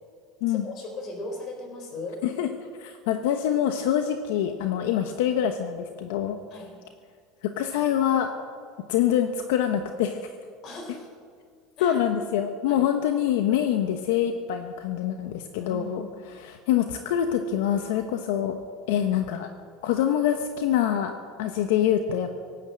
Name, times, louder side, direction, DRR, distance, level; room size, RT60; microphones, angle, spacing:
voice 1, 0.5-2.2 6.5-6.7 10.6-11.1 11.8-12.0 12.7-12.8 15.6-16.1, left 2 dB, 40° left, 4 dB, 4.2 m, -38 dB
voice 2, 2.8-6.4 7.4-8.3 8.9-10.2 11.8-16.1 16.4-18.6 18.9-19.5 19.8-21.1 21.4-22.4, left 10 dB, 80° left, 6 dB, 1.1 m, -25 dB
17.5 x 9.8 x 7.8 m, 2.1 s
supercardioid pair, 140°, 0 cm